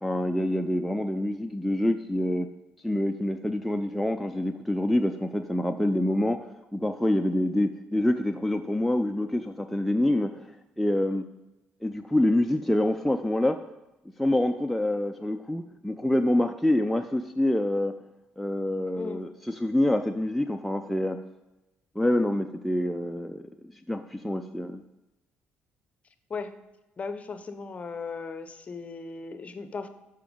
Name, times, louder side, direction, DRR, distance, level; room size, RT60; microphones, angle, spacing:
voice 1, 0.0-2.5 2.8-10.5 10.8-11.3 11.8-13.6 14.2-17.9 18.4-21.2 22.0-23.4 23.9-24.8, left 1 dB, ahead, 4 dB, 0.4 m, -26 dB
voice 2, 19.0-19.3 26.3-26.5 27.0-29.9, left 4 dB, 35° left, 10 dB, 0.7 m, -37 dB
6.9 x 5.7 x 5.1 m, 1.0 s
cardioid pair, 100°, 4 cm